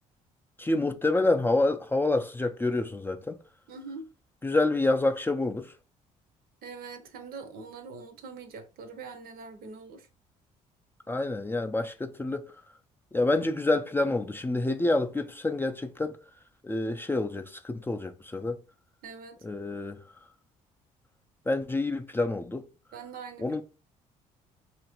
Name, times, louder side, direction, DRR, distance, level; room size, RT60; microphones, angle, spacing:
voice 1, 0.6-3.4 4.4-5.7 11.1-12.5 13.1-16.2 16.6-18.6 19.4-20.0 21.5-22.6 23.4-23.6, left 2 dB, 15° left, 0.3 m, -27 dB
voice 2, 3.7-4.1 6.6-10.1 19.0-19.4 22.9-23.4, right 4 dB, 65° right, 0.6 m, -43 dB
2.8 x 2.5 x 2.9 m
supercardioid pair, 65°, 17 cm